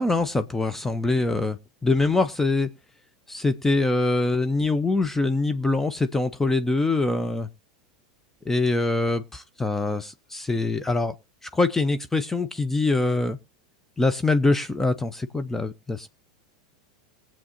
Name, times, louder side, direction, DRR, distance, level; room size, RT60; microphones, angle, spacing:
voice 1, 0.0-1.6 1.8-2.7 3.3-7.5 8.5-11.1 11.5-13.4 14.0-16.1, left 2 dB, 10° left, 0.6 m, -24 dB
21.5 x 7.4 x 2.8 m
figure-of-eight pair, 85°, 3 cm